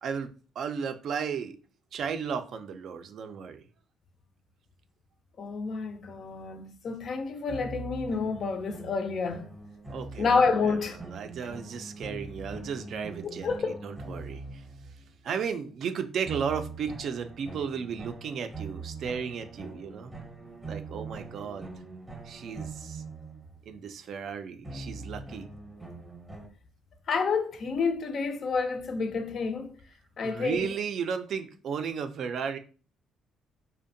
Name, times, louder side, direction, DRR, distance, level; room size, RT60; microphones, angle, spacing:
voice 1, 0.0-1.6 1.9-3.6 9.9-10.4 10.6-14.6 15.2-20.1 20.7-21.7 22.2-23.0 23.7-25.5 30.2-32.6, right 6 dB, 60° right, 0.3 m, -34 dB
voice 2, 5.4-9.5 10.2-11.0 11.4-11.5 13.4-13.8 27.1-29.8 30.2-30.7, left 4 dB, 50° left, 0.4 m, -29 dB
sound 1, 7.5-15.1 16.3-23.8 24.6-26.5, right 3 dB, 10° right, 0.7 m, -42 dB
2.6 x 2.1 x 2.6 m
cardioid pair, 115°, 0 cm